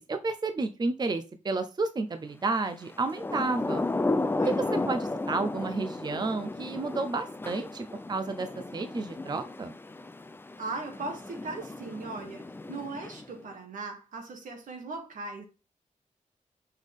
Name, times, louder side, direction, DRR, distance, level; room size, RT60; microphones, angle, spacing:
voice 1, 0.0-3.8 4.4-9.8, right 3 dB, 30° right, 0.6 m, -31 dB
Thunder / Rain, 2.9-13.5, left 2 dB, 15° left, 0.4 m, -34 dB
voice 2, 4.4-4.9 10.6-15.4, right 3 dB, 90° right, 1.9 m, -39 dB
5.8 x 5.4 x 3.6 m
wide cardioid pair, 95°, 13 cm